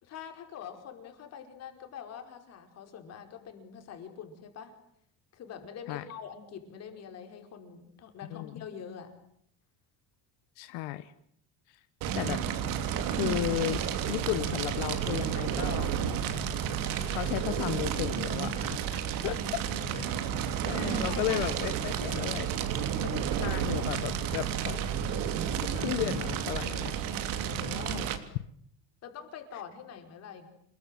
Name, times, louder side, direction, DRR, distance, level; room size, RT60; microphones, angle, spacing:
voice 1, 0.0-4.7 5.3-9.1 19.1-20.0 20.9-21.8 22.1-22.4 27.4-28.1 29.0-30.5, left 7 dB, 40° left, 6 dB, 5.2 m, -45 dB
voice 2, 8.3-8.7 10.6-11.1 11.7-11.8 12.2-12.4 13.1-15.9 17.1-19.6 20.0-20.1 20.4-22.5 23.0-24.8 25.6-27.0 27.9-28.1, left 17 dB, 85° left, 12 dB, 1.3 m, -34 dB
Fire, 12.0-28.2, right 8 dB, 60° right, 3.1 m, -31 dB
28.5 x 21.0 x 9.3 m, 0.69 s
cardioid pair, 170°, 39 cm